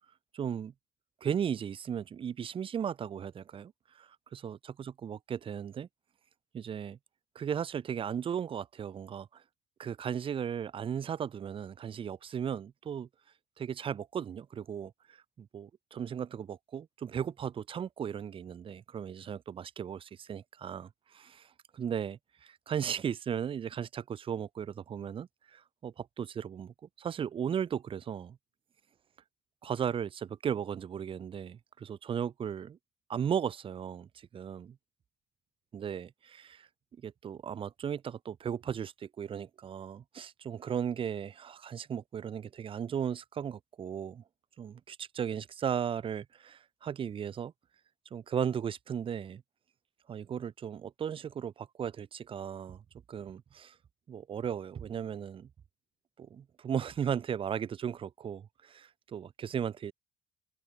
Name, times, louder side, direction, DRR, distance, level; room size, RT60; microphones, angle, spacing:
voice 1, 0.3-0.7 1.2-3.7 4.0-5.9 6.5-7.0 7.4-9.4 9.8-13.1 13.6-14.9 15.4-21.5 21.7-28.4 29.6-32.8 33.1-34.8 35.7-36.7 37.0-44.2 44.6-47.5 48.1-49.4 50.1-52.8 53.1-53.7 54.1-55.5 56.2-59.9, right 8 dB, 30° right, 0.5 m, -36 dB
cardioid pair, 110°, 17 cm